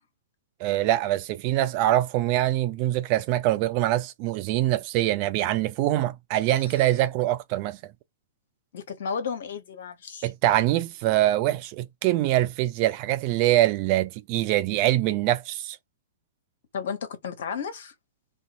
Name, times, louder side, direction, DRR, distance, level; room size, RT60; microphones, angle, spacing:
voice 1, 0.6-7.8 10.2-15.8, right 14 dB, 35° right, 0.3 m, -24 dB
voice 2, 8.7-10.3 16.7-17.9, left 6 dB, 55° left, 0.9 m, -33 dB
2.5 x 2.3 x 2.6 m
figure-of-eight pair, 110°, 0 cm